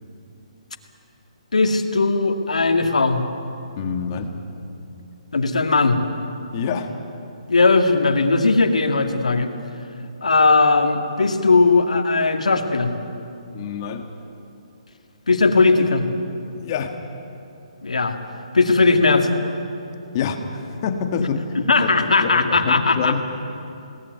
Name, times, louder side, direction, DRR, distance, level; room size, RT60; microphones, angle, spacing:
voice 1, 1.5-3.2 5.3-6.0 7.5-9.5 10.2-12.9 15.3-16.1 17.8-18.2 18.5-19.3 21.2-21.3 21.6-23.1, left 3 dB, 90° left, 6 dB, 2.2 m, -18 dB
voice 2, 3.8-4.4 6.5-6.9 13.5-14.1 16.5-16.9 20.1-21.7 22.2-23.2, left 6 dB, 40° left, 5 dB, 1.9 m, -27 dB
21.5 x 18.5 x 9.5 m, 2.6 s
hypercardioid pair, 150°, 4 cm